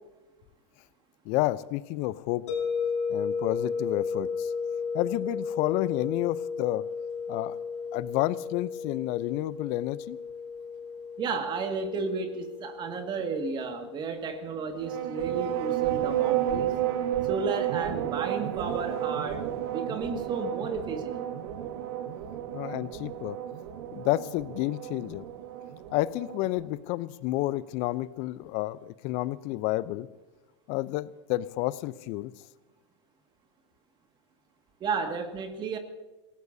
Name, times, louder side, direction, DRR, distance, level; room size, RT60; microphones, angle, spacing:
voice 1, 1.2-2.4 3.1-4.5 4.9-6.8 7.3-7.6 7.9-10.2 22.5-23.4 23.9-25.2 25.9-30.1 30.7-32.3, left 17 dB, 45° left, 17 dB, 0.7 m, -30 dB
sound 1, 2.5-17.4, left 5 dB, 75° left, 4.4 m, -35 dB
voice 2, 11.2-16.7 17.2-21.2 34.8-35.8, right 4 dB, 30° right, 5 dB, 2.1 m, -33 dB
sound 2, 14.8-26.7, right 11 dB, 55° right, 1.4 m, -32 dB
27.0 x 17.5 x 2.8 m, 1.1 s
hypercardioid pair, 105°, 15 cm